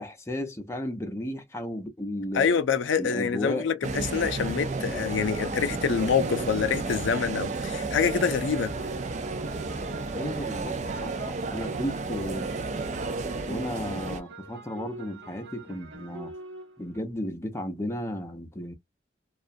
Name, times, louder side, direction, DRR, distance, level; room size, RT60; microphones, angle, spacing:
voice 1, 0.0-2.5 3.0-3.7 10.1-12.5 13.5-16.3 16.8-18.7, left 1 dB, 15° left, 0.6 m, -34 dB
voice 2, 2.3-8.7, left 6 dB, 85° left, 0.4 m, -26 dB
sound 1, 3.8-14.2, right 3 dB, 40° right, 0.4 m, -32 dB
sound 2, 5.2-17.0, right 2 dB, 65° right, 0.8 m, -45 dB
2.4 x 2.1 x 2.5 m
head